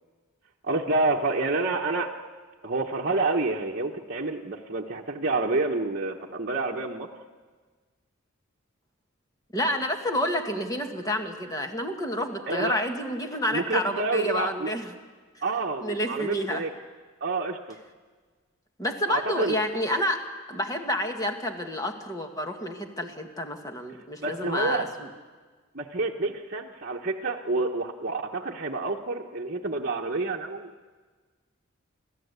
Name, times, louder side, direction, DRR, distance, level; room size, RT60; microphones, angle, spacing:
voice 1, 0.7-2.1 2.6-7.1 12.5-12.7 13.5-14.7 15.4-16.7 17.2-17.8 19.1-19.6 24.2-24.8 25.7-30.7, right 3 dB, 45° right, -2 dB, 1.1 m, -28 dB
voice 2, 9.5-14.9 15.8-16.6 18.8-20.2 20.5-25.1, left 1 dB, 15° left, 4 dB, 1.9 m, -29 dB
29.5 x 13.0 x 8.2 m, 1.4 s
head